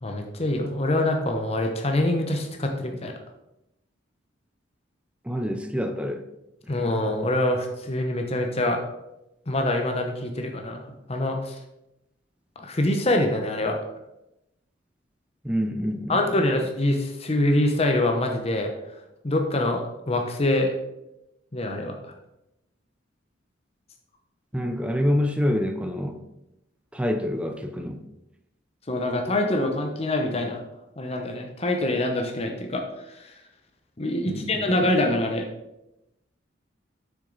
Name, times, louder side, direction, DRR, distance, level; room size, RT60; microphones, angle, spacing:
voice 1, 0.0-3.1 6.7-8.8 9.5-10.8 11.1-11.5 12.6-13.8 16.1-18.7 19.2-19.8 20.1-20.7 21.5-22.0 28.9-30.6 31.0-32.8 33.2-33.3 34.0-35.5, left 1 dB, 30° left, 3 dB, 0.8 m, -25 dB
voice 2, 5.2-6.2 15.4-16.4 24.5-26.2 26.9-28.0 34.3-34.9, equal, 5° right, 6 dB, 0.5 m, -27 dB
6.9 x 6.3 x 4.0 m, 0.89 s
head